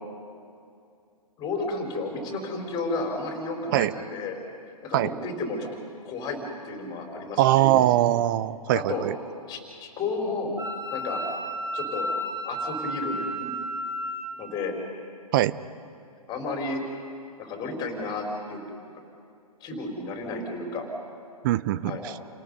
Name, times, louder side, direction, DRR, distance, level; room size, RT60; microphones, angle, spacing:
voice 1, 1.4-4.4 4.8-5.8 6.0-6.4 6.6-7.7 8.7-9.0 9.5-10.5 10.9-11.2 11.7-12.1 12.4-13.5 14.4-14.7 16.3-16.8 17.4-18.6 19.6-20.9 21.8-22.0, left 3 dB, 20° left, 2 dB, 4.5 m, -32 dB
voice 2, 7.4-9.1 15.3-15.6 21.4-22.1, right 14 dB, 35° right, 16 dB, 0.6 m, -22 dB
Wind instrument woodwind instrument, 10.6-14.3, equal, 20° right, 5.8 m, -32 dB
29.5 x 18.5 x 5.5 m, 2.4 s
figure-of-eight pair, 130°, 19 cm